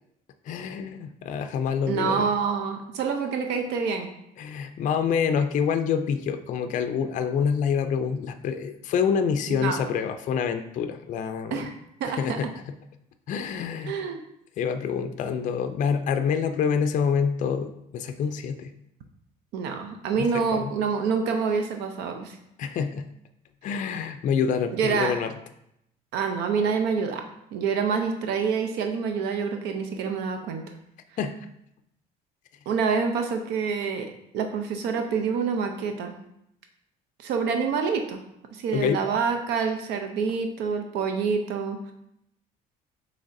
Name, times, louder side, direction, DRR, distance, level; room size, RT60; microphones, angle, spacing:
voice 1, 0.5-2.3 4.4-11.7 12.2-12.5 13.3-13.9 14.6-18.7 20.2-20.7 22.6-23.1 23.6-25.3 31.2-31.5 38.7-39.0, left 6 dB, 50° left, 8 dB, 0.4 m, -27 dB
voice 2, 1.9-4.1 9.5-9.8 11.5-11.7 12.0-12.4 13.9-14.2 19.5-22.4 24.7-25.1 26.1-27.2 27.5-30.6 32.7-36.1 37.2-38.2 38.5-41.9, right 5 dB, 85° right, 5 dB, 0.6 m, -27 dB
6.2 x 3.3 x 2.6 m, 0.78 s
cardioid pair, 110°, 17 cm